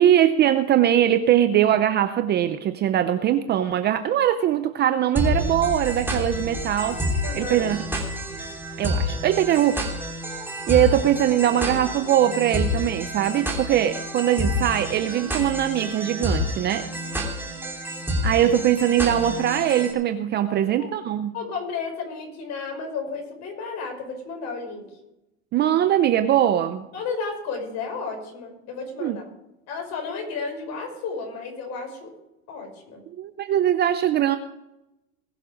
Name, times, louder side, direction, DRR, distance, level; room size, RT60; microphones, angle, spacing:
voice 1, 0.0-7.0 7.3-7.8 8.8-9.8 10.7-16.9 18.2-21.3 25.5-26.9 29.0-29.2 33.2-34.4, right 11 dB, 25° right, 10 dB, 0.6 m, -21 dB
sound 1, 5.2-19.9, left 1 dB, 5° right, 2.8 m, -29 dB
voice 2, 7.2-7.7 20.5-20.9 21.3-24.9 26.9-29.3 29.7-32.1 32.5-33.0, left 4 dB, 40° left, 2 dB, 5.7 m, -33 dB
20.5 x 7.3 x 5.1 m, 0.91 s
supercardioid pair, 135°, 41 cm